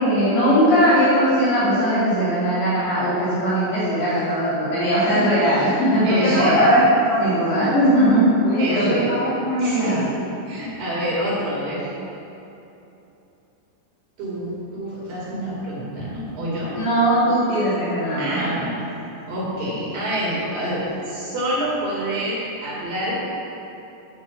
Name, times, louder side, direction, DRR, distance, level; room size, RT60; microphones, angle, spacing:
voice 1, 0.0-10.1 16.8-18.6, equal, 75° left, -12 dB, 5.1 m, -19 dB
voice 2, 6.0-6.8 8.6-9.1 9.6-10.0 10.5-11.9 14.2-16.8 18.2-18.8 19.3-23.1, equal, 55° right, -7 dB, 3.8 m, -27 dB
10.5 x 6.3 x 7.3 m, 2.9 s
omnidirectional pair, 5.1 m